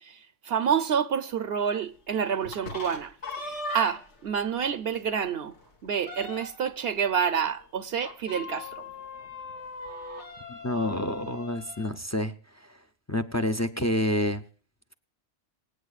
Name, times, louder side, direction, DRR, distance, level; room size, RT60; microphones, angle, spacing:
voice 1, 0.0-5.5 5.8-8.8, right 7 dB, 65° right, 0.9 m, -28 dB
sound 1, 2.4-4.2 4.7-4.8 5.1-5.2 5.5-6.7 8.0-11.9, left 2 dB, 80° left, 2.0 m, -39 dB
voice 2, 10.5-12.3 12.6-12.7 13.1-14.4, left 1 dB, 20° left, 0.5 m, -28 dB
26.5 x 8.9 x 2.4 m
omnidirectional pair, 1.2 m